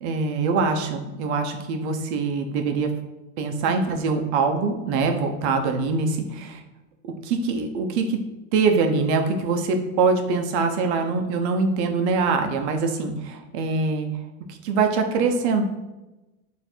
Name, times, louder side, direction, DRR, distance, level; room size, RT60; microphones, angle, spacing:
voice 1, 0.0-2.9 3.4-6.5 7.2-8.2 8.5-14.1 14.5-15.7, right 4 dB, 60° right, 5 dB, 1.0 m, -23 dB
6.8 x 3.1 x 4.5 m, 1.0 s
supercardioid pair, 150°, 38 cm